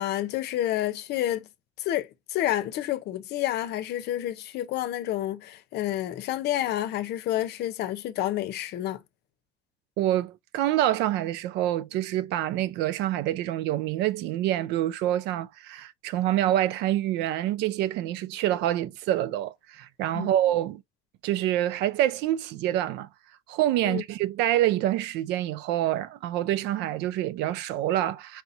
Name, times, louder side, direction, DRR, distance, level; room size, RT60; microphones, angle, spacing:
voice 1, 0.0-1.5 1.8-9.0 20.1-20.3 23.8-24.0, left 13 dB, 70° left, 0.7 m, -29 dB
voice 2, 10.0-20.8 21.2-23.1 23.5-28.4, right 13 dB, 75° right, 0.4 m, -26 dB
4.7 x 2.8 x 2.6 m
supercardioid pair, 80°, 18 cm